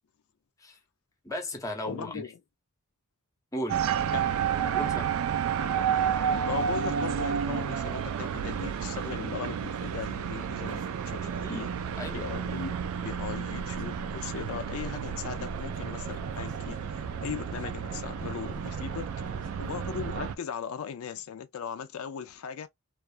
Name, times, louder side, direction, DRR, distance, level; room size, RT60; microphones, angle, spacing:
voice 1, 1.2-2.2 3.5-3.8 4.7-5.1 11.4-12.3, equal, 15° left, 0.6 m, -36 dB
voice 2, 1.9-2.4 4.1-4.5 6.5-11.7 12.1-19.1 19.6-22.7, left 7 dB, 80° left, 0.4 m, -38 dB
sound 1, 3.7-20.4, right 7 dB, 75° right, 0.3 m, -31 dB
sound 2, 9.7-20.3, right 1 dB, 40° right, 0.7 m, -45 dB
2.4 x 2.3 x 2.4 m
head